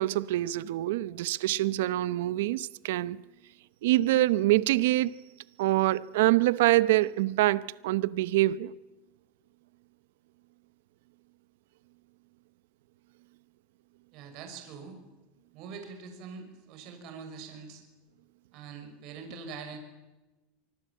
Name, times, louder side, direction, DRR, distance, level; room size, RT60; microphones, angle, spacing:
voice 1, 0.0-3.2 3.8-5.2 5.6-8.7, right 16 dB, 75° right, 0.9 m, -25 dB
voice 2, 14.1-15.0 15.5-17.8 18.5-19.8, right 5 dB, 50° right, 6.2 m, -43 dB
25.0 x 24.0 x 8.7 m
supercardioid pair, 135°, 0 cm